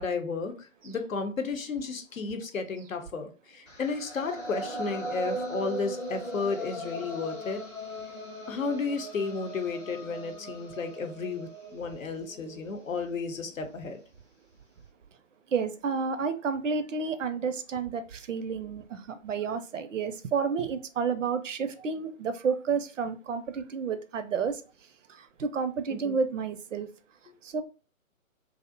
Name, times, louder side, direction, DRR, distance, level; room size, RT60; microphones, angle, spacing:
voice 1, 0.0-7.6 8.5-14.0 25.9-26.2, left 4 dB, 75° left, 0.7 m, -33 dB
sound 1, 3.7-13.7, right 1 dB, 5° left, 0.5 m, -39 dB
voice 2, 15.5-24.6 25.4-26.9 27.4-27.6, right 5 dB, 65° right, 0.5 m, -30 dB
2.5 x 2.0 x 2.6 m
figure-of-eight pair, 135°, 41 cm